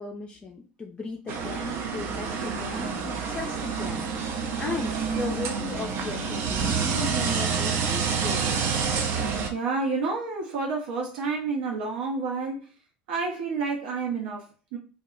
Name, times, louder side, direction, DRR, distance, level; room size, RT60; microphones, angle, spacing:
voice 1, 0.0-8.6, left 4 dB, 20° left, 0.4 m, -36 dB
sound 1, 1.3-9.5, right 6 dB, 50° right, 0.5 m, -28 dB
voice 2, 9.5-12.7 13.1-14.8, right 4 dB, 70° right, 0.9 m, -29 dB
2.2 x 2.0 x 3.7 m
hypercardioid pair, 95°, 5 cm